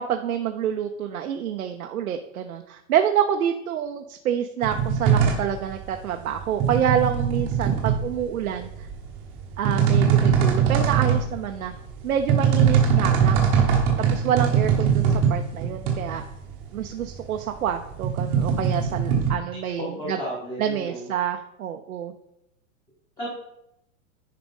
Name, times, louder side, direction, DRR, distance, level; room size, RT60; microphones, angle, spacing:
voice 1, 0.0-8.7 9.6-11.7 12.0-13.5 14.0-16.3 16.7-20.2 20.6-22.1, right 9 dB, 90° right, 5 dB, 0.9 m, -27 dB
sound 1, 4.6-19.3, right 7 dB, 15° right, 0.9 m, -22 dB
voice 2, 19.8-21.1 23.2-23.3, equal, 10° left, -5 dB, 1.1 m, -33 dB
10.0 x 5.1 x 5.3 m, 0.81 s
supercardioid pair, 180°, 41 cm